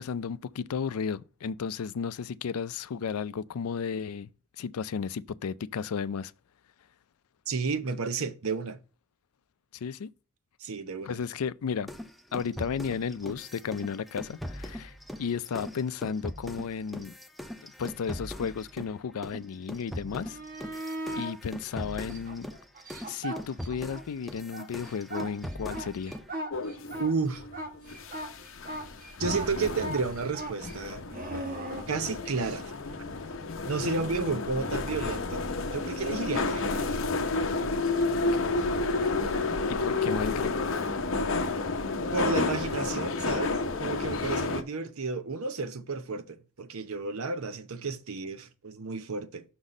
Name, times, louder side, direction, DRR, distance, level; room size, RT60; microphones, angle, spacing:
voice 1, 0.0-4.3 4.6-6.3 9.7-10.1 11.1-11.9 12.3-17.1 17.6-20.4 21.1-22.5 23.1-26.1 38.1-38.7 39.7-40.6, left 6 dB, 90° left, 0.4 m, -34 dB
voice 2, 7.5-8.8 10.6-11.2 27.0-27.4 29.2-31.1 31.9-32.7 33.6-36.9 42.1-49.4, right 4 dB, 75° right, 0.8 m, -32 dB
sound 1, 11.9-19.0 19.2-26.3, equal, ahead, 0.4 m, -41 dB
sound 2, 20.1-21.4 22.0-24.0 24.4-32.6 35.3-35.4, right 1 dB, 40° right, 1.3 m, -38 dB
sound 3, 26.5-44.6, left 3 dB, 60° left, 0.8 m, -31 dB
6.1 x 4.1 x 4.9 m
head